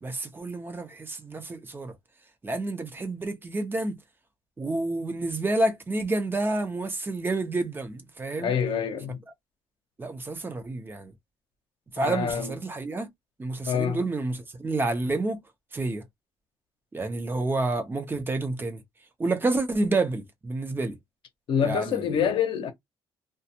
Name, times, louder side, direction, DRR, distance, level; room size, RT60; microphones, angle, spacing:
voice 1, 0.0-1.9 2.4-4.0 4.6-8.5 10.0-11.1 11.9-13.1 13.4-15.4 15.7-16.0 16.9-18.8 19.2-21.0 21.6-22.2, right 2 dB, 20° right, 0.8 m, -29 dB
voice 2, 8.4-9.2 12.0-12.5 13.7-14.0 21.5-22.7, left 7 dB, 65° left, 0.7 m, -26 dB
2.4 x 2.2 x 2.8 m
cardioid pair, 105°, 9 cm